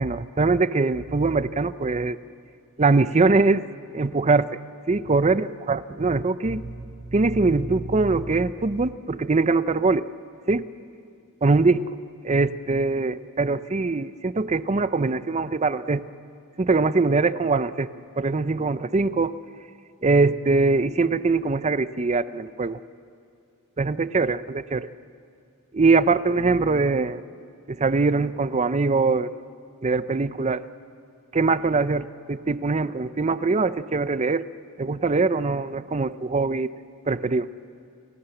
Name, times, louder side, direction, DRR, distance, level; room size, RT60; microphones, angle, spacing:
voice 1, 0.0-2.2 2.8-3.6 3.9-4.6 4.9-10.1 10.5-10.6 11.4-11.9 12.2-16.0 16.6-17.9 18.2-19.4 20.0-22.8 23.8-24.9 25.7-27.2 27.7-29.3 29.8-30.6 31.3-34.5 34.8-36.7 37.1-37.5, right 3 dB, 30° right, 14 dB, 0.6 m, -22 dB
30.0 x 18.5 x 7.9 m, 2.4 s
head